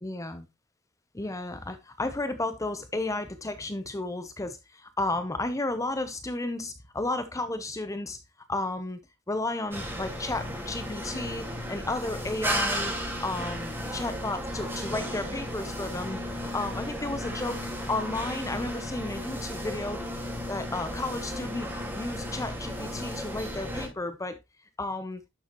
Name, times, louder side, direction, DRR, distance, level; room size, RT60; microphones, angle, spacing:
voice 1, 0.0-0.5 1.1-8.2 8.5-9.0 9.3-17.6 17.9-20.0 20.5-24.4 24.8-25.2, left 2 dB, 15° left, 0.7 m, -33 dB
sound 1, 9.7-23.9, equal, 10° right, 3.8 m, -34 dB
11.0 x 7.0 x 3.0 m
head